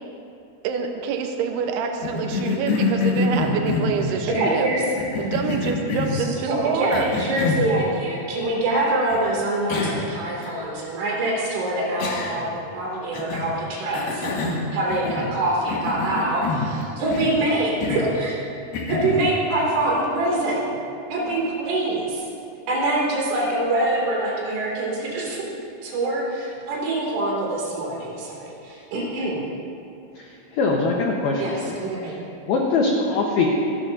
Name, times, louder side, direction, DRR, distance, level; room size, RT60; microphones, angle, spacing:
voice 1, 0.6-4.7 5.2-7.1, right 6 dB, 90° right, 3 dB, 2.3 m, -26 dB
Cough, 2.0-4.2 5.0-6.2 6.9-7.7 9.1-9.2 9.7-10.1 10.4-10.5 12.0-12.6 13.1-13.5 13.9-15.4 15.7-16.7 17.1-17.4 17.8-18.1 18.7-19.2, left 3 dB, 65° left, 2.9 m, -26 dB
voice 2, 4.1-4.8 6.1-18.4 18.9-20.8 21.1-22.3 22.7-25.5 25.8-29.4 31.4-32.2, right 2 dB, 70° right, -4 dB, 5.0 m, -25 dB
voice 3, 30.5-31.8 32.5-33.5, left 3 dB, 80° left, -1 dB, 2.2 m, -22 dB
26.0 x 12.5 x 2.7 m, 2.6 s
omnidirectional pair, 5.9 m